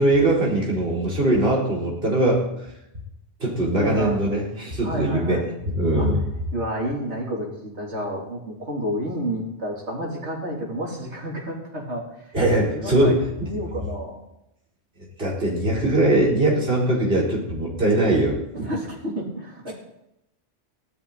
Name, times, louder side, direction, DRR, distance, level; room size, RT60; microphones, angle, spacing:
voice 1, 0.0-2.5 3.4-5.4 5.7-6.2 12.3-13.2 15.2-18.4, right 1 dB, 60° right, -2 dB, 4.5 m, -21 dB
voice 2, 3.8-4.2 4.8-5.5 5.9-6.2 6.5-12.4 12.7-14.2 18.5-19.7, equal, 85° right, -3 dB, 4.0 m, -30 dB
16.5 x 12.5 x 4.3 m, 0.84 s
omnidirectional pair, 1.1 m